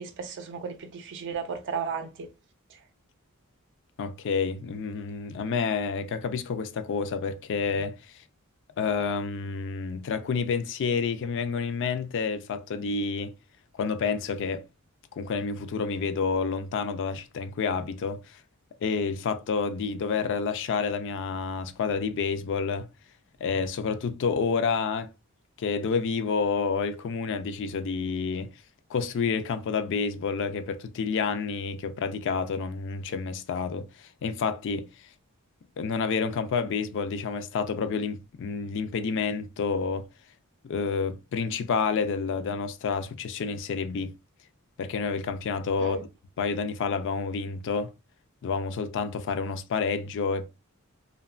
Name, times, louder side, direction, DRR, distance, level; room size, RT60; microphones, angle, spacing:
voice 1, 0.0-2.3 45.8-46.0, right 6 dB, 55° right, 0.5 m, -34 dB
voice 2, 4.0-8.0 8.8-13.3 13.7-14.6 15.1-18.4 18.8-22.9 23.4-25.1 25.6-28.5 28.9-34.9 35.8-40.1 40.6-44.1 44.8-46.0 46.4-47.9 48.4-50.5, left 5 dB, 60° left, 0.4 m, -29 dB
2.8 x 2.2 x 2.3 m
head